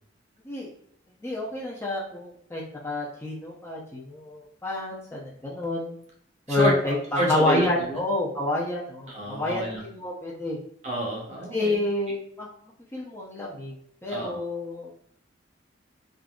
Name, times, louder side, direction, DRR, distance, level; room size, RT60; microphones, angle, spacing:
voice 1, 1.2-6.0 6.5-10.6 11.5-12.5 12.9-13.7 14.0-14.9, left 2 dB, 15° left, -5 dB, 0.6 m, -29 dB
voice 2, 7.1-8.0 9.1-9.8 10.8-11.8 14.1-14.4, equal, 35° right, -2 dB, 0.9 m, -28 dB
3.6 x 2.6 x 2.3 m, 0.69 s
head